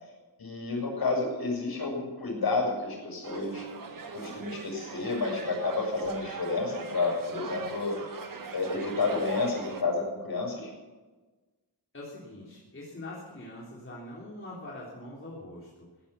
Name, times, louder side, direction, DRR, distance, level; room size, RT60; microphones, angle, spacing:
voice 1, 0.4-3.7 4.1-8.0 8.5-10.7, left 3 dB, 55° left, -1 dB, 7.1 m, -30 dB
sound 1, 3.2-9.8, right 4 dB, 45° right, 1.7 m, -41 dB
voice 2, 11.9-15.9, left 1 dB, 30° left, -6 dB, 3.7 m, -43 dB
16.0 x 11.0 x 7.1 m, 1.2 s
wide cardioid pair, 105°, 44 cm